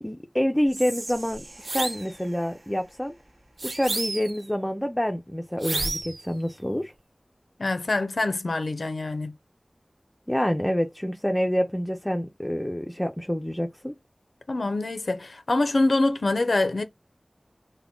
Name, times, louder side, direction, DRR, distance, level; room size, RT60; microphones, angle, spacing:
voice 1, 0.0-3.1 3.6-6.9 10.3-13.9, equal, 10° left, 0.4 m, -27 dB
Whispering, 0.6-3.9, right 1 dB, 70° right, 0.9 m, -44 dB
sound 1, 1.6-2.1 3.6-4.4 5.6-6.2, right 2 dB, 90° right, 0.5 m, -30 dB
voice 2, 7.6-9.3 14.5-16.8, left 2 dB, 80° left, 0.4 m, -25 dB
3.5 x 2.1 x 3.6 m
wide cardioid pair, 60°, 0 cm